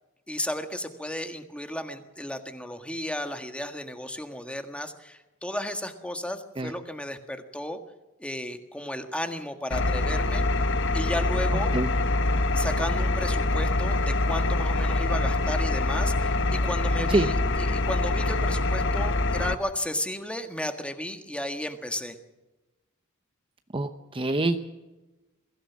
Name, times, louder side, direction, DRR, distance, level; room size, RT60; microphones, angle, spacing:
voice 1, 0.3-7.8 8.2-10.4 10.9-11.7 12.5-22.2, left 1 dB, 5° left, 6 dB, 1.6 m, -34 dB
Engine, 9.7-19.5, left 2 dB, 60° left, 1.1 m, -25 dB
voice 2, 23.7-24.6, right 2 dB, 25° right, 7 dB, 0.8 m, -25 dB
22.5 x 15.5 x 7.4 m, 1.1 s
head